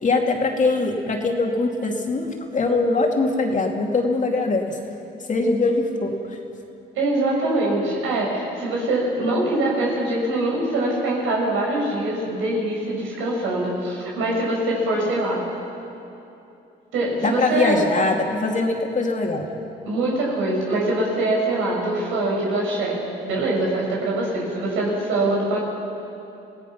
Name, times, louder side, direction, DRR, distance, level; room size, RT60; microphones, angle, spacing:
voice 1, 0.0-4.8 5.3-6.4 17.2-19.5, left 3 dB, 40° left, 1 dB, 2.6 m, -22 dB
voice 2, 6.9-15.4 16.9-17.7 19.8-25.6, right 2 dB, 90° right, -3 dB, 6.4 m, -23 dB
26.0 x 17.0 x 5.8 m, 2.8 s
cardioid pair, 90°, 20 cm